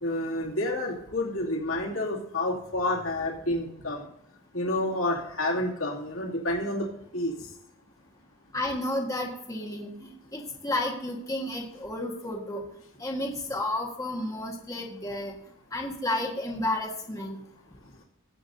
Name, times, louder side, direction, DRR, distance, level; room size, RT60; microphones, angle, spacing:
voice 1, 0.0-4.1 4.5-6.9 7.1-7.3, left 1 dB, 70° left, -3 dB, 2.5 m, -29 dB
voice 2, 8.5-12.6 13.0-15.3 15.7-17.4, left 1 dB, 15° left, -1 dB, 1.5 m, -32 dB
16.0 x 8.5 x 2.7 m, 0.78 s
head